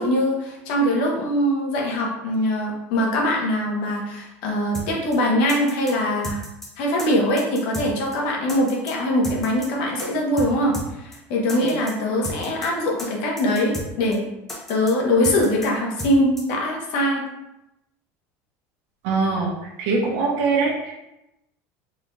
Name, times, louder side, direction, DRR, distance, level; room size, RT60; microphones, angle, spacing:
voice 1, 0.0-6.4 6.8-10.7 11.0-14.2 14.7-17.2, left 1 dB, 70° left, -1 dB, 1.3 m, -22 dB
sound 1, 4.7-4.9 5.1-5.2 5.5-5.9 6.2-6.7 7.0-7.1 7.4-7.9 8.1-8.2 8.5-8.9 9.2-9.7 10.0-10.1 10.4-10.5 10.7-10.9 11.1-11.2 11.5-11.9 12.2-12.7 13.0-13.1 13.4-13.9 14.1-14.2 14.5-14.9 15.2-15.7 16.0-16.1 16.4-16.5, equal, 5° left, 0.8 m, -33 dB
voice 2, 19.0-19.5 19.8-20.9, right 4 dB, 65° right, -2 dB, 1.0 m, -22 dB
4.0 x 3.7 x 3.3 m, 0.89 s
cardioid pair, 160°, 6 cm